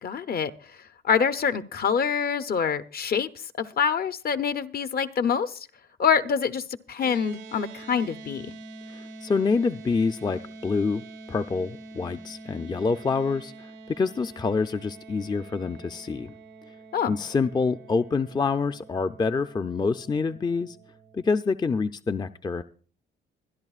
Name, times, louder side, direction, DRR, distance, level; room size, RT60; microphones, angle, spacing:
voice 1, 0.0-5.7 6.0-8.6 16.9-17.2, left 7 dB, 50° left, 11 dB, 0.8 m, -26 dB
sound 1, 7.0-21.4, right 3 dB, 80° right, 1.1 m, -45 dB
voice 2, 8.9-16.3 17.1-20.8 21.1-22.6, left 4 dB, 20° left, 9 dB, 0.5 m, -27 dB
24.5 x 10.5 x 2.4 m, 0.40 s
cardioid pair, 90°, 20 cm